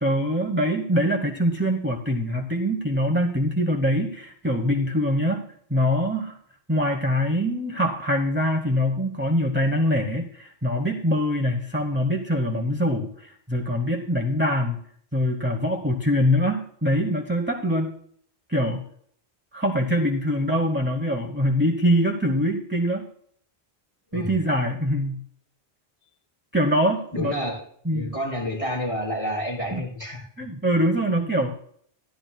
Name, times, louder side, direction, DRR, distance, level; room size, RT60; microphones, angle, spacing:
voice 1, 0.0-5.4 5.7-6.4 6.7-14.8 15.1-17.9 18.5-18.8 19.5-23.0 24.1-25.2 26.5-27.3 27.9-28.1 29.7-29.8 30.4-31.5, equal, 10° right, 3 dB, 0.9 m, -23 dB
voice 2, 27.1-27.6 27.9-30.3, equal, 35° left, -4 dB, 5.2 m, -29 dB
15.5 x 12.0 x 2.3 m, 0.62 s
omnidirectional pair, 1.1 m